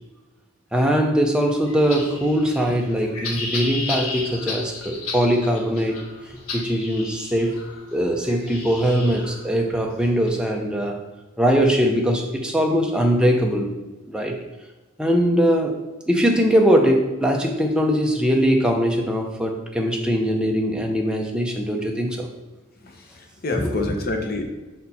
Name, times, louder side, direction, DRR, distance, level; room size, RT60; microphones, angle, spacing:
voice 1, 0.7-6.0 6.5-7.6 7.9-11.0 11.4-13.7 14.1-14.4 15.0-15.7 16.1-22.3 23.6-23.7, equal, 5° right, 1 dB, 0.6 m, -21 dB
sound 1, 1.6-10.3, left 3 dB, 90° left, 1.1 m, -34 dB
voice 2, 22.9-24.4, left 2 dB, 45° left, 3 dB, 0.7 m, -27 dB
5.4 x 4.3 x 4.1 m, 1.1 s
head